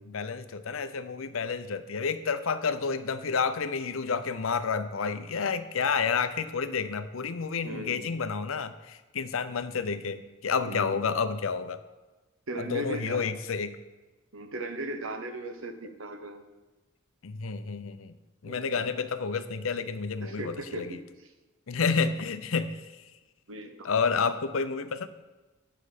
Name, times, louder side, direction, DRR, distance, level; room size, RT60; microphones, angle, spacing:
voice 1, 0.0-11.8 12.6-13.7 17.2-18.1 18.4-21.0 21.7-22.9 23.8-25.1, left 5 dB, 70° left, 11 dB, 0.6 m, -30 dB
voice 2, 7.6-8.1 10.6-10.9 12.5-13.2 14.3-16.4 18.4-18.9 20.2-21.3 23.5-23.9, right 1 dB, 70° right, 6 dB, 1.0 m, -37 dB
9.6 x 6.6 x 5.0 m, 1.2 s
head